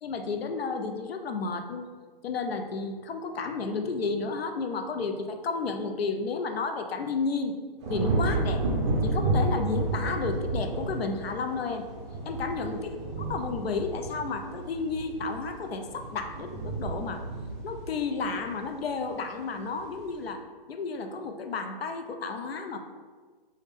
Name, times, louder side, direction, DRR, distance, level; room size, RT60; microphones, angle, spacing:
voice 1, 0.0-1.8 2.2-7.6 7.9-8.6 9.0-11.9 12.3-12.9 13.3-17.3 17.6-20.4 20.7-22.8, left 4 dB, 85° left, 5 dB, 0.5 m, -32 dB
sound 1, 7.8-19.1 19.5-20.0, right 2 dB, 30° right, 0.4 m, -31 dB
3.4 x 2.1 x 3.5 m, 1.4 s
hypercardioid pair, 140°, 30 cm